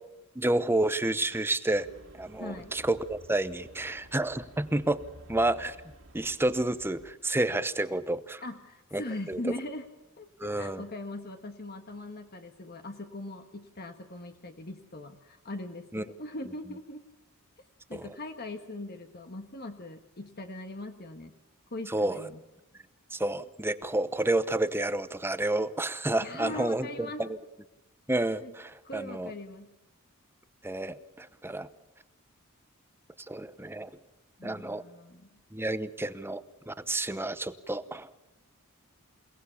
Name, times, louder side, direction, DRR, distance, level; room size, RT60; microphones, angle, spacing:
voice 1, 0.3-1.9 2.1-5.0 5.3-5.8 6.1-8.4 8.9-9.0 9.3-9.4 10.4-10.8 15.9-16.0 17.9-18.1 21.9-22.3 23.1-27.4 28.1-29.3 30.6-31.7 33.3-33.9 34.4-34.8 35.5-38.1, right 1 dB, 10° right, 13 dB, 0.9 m, -30 dB
sound 1, 1.7-7.1, right 1 dB, 65° right, 2.5 m, -52 dB
voice 2, 2.4-2.7 8.4-9.9 10.2-17.0 17.9-21.3 21.7-22.4 26.2-27.2 28.4-28.5 28.8-29.7 34.4-35.4, left 2 dB, 45° left, 6 dB, 1.5 m, -40 dB
29.0 x 18.5 x 7.1 m, 0.95 s
head